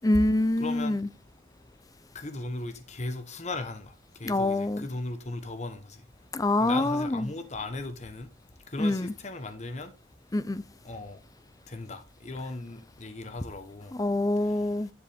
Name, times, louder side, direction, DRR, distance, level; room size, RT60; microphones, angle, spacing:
voice 1, 0.0-1.1 4.2-4.8 6.3-7.3 8.8-9.1 10.3-10.6 14.0-14.9, left 2 dB, 20° left, 0.5 m, -25 dB
voice 2, 0.6-1.0 2.1-6.1 6.6-8.3 8.7-9.9 10.8-11.2 11.7-14.0 14.4-14.7, left 2 dB, 40° left, 1.1 m, -37 dB
10.0 x 7.5 x 3.6 m
head